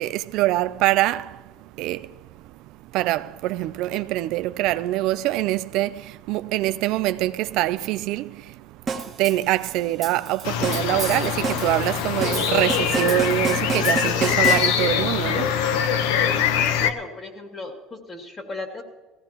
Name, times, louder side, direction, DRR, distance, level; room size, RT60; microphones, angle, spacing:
voice 1, 0.0-2.6 2.9-16.7, right 16 dB, 65° right, 0.4 m, -25 dB
sound 1, 8.9-15.1, right 5 dB, 25° right, 1.5 m, -30 dB
sound 2, 10.4-16.9, left 8 dB, 80° left, 0.9 m, -23 dB
voice 2, 16.7-18.8, left 3 dB, 25° left, 2.5 m, -36 dB
19.5 x 15.5 x 3.0 m
cardioid pair, 130°, 0 cm